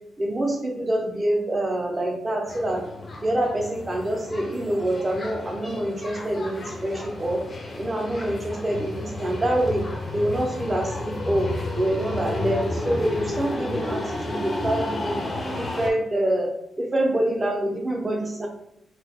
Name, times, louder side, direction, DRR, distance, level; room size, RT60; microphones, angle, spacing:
voice 1, 0.2-2.9 3.2-7.4 7.8-15.3 15.5-18.5, right 1 dB, 25° right, 2 dB, 0.5 m, -26 dB
sound 1, 2.5-15.9, left 2 dB, 30° left, 0.5 m, -32 dB
2.9 x 2.2 x 3.4 m, 0.83 s
cardioid pair, 135°, 0 cm